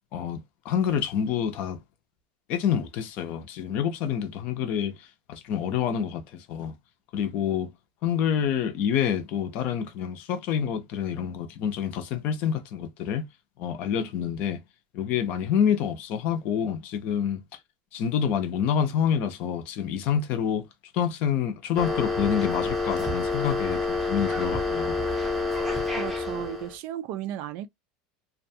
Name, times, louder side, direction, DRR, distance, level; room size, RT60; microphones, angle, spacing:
voice 1, 0.1-1.8 2.5-6.7 7.1-7.7 8.0-13.3 13.6-14.6 14.9-17.4 17.9-20.6 20.9-25.0, left 8 dB, 45° left, 0.6 m, -27 dB
sound 1, 21.8-26.8, left 3 dB, ahead, 0.6 m, -28 dB
voice 2, 26.0-27.7, right 12 dB, 50° right, 0.3 m, -34 dB
2.5 x 2.2 x 2.6 m
supercardioid pair, 165°, 4 cm